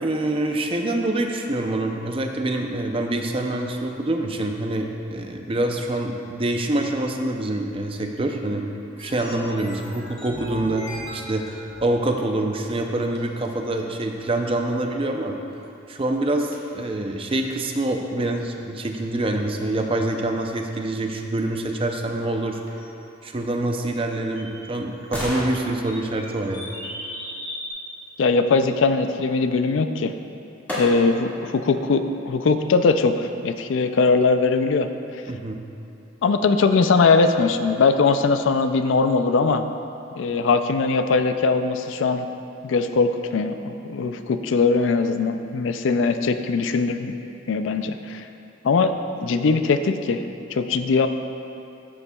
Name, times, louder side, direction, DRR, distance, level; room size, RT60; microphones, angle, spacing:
voice 1, 0.0-8.7 9.0-11.5 11.8-15.3 15.9-22.6 23.2-26.6 35.3-35.6, right 1 dB, 30° right, 3 dB, 0.5 m, -25 dB
sound 1, 9.0-12.0 12.8-12.9 13.2-13.3 13.4-13.5 15.5-15.6 15.9-16.0 16.4-16.5 17.3-17.4 18.5-18.6 18.8-18.9 19.4-19.5 19.8-19.9 22.7-23.3 24.4-24.7 25.8-27.7, equal, 35° left, 1.7 m, -37 dB
sound 2, 23.8-27.7 29.8-29.9 30.7-31.4 31.9-32.0, equal, 10° left, 2.0 m, -35 dB
voice 2, 28.2-30.1 30.8-34.9 36.2-39.6 40.2-42.3 42.6-47.1 47.5-48.2 48.6-48.9 49.2-50.2 50.5-51.1, left 4 dB, 70° left, 8 dB, 0.4 m, -20 dB
13.0 x 7.0 x 2.3 m, 2.8 s
head